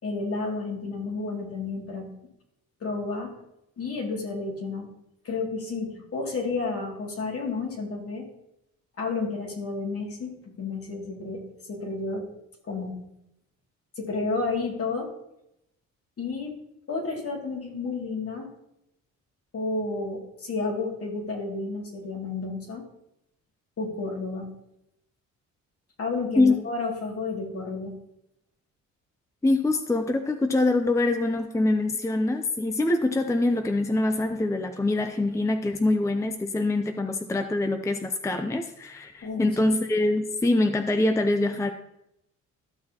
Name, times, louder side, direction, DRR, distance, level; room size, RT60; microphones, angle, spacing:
voice 1, 0.0-2.1 2.8-3.3 3.8-4.9 5.2-8.3 9.0-12.3 12.7-13.0 14.0-15.1 16.2-16.5 16.9-18.5 19.5-22.8 23.8-24.5 26.0-28.0 39.2-39.5, left 3 dB, 50° left, 0 dB, 2.5 m, -31 dB
voice 2, 29.4-41.7, left 2 dB, 10° left, 7 dB, 0.5 m, -24 dB
13.5 x 6.3 x 2.9 m, 0.82 s
cardioid pair, 90°, 30 cm